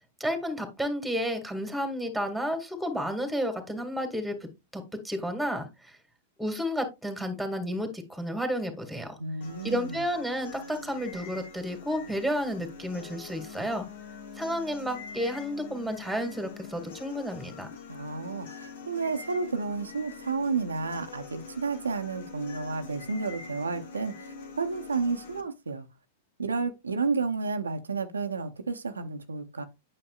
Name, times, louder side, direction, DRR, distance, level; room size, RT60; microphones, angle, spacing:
voice 1, 0.2-6.0 6.4-9.2 9.6-13.9 14.4-17.7, equal, ahead, 1.8 m, -31 dB
voice 2, 9.2-10.0 17.9-25.9 26.4-29.6, right 4 dB, 85° right, 0.7 m, -31 dB
sound 1, 9.4-25.4, left 5 dB, 65° left, 1.3 m, -44 dB
8.9 x 6.2 x 2.4 m
figure-of-eight pair, 100°, 0 cm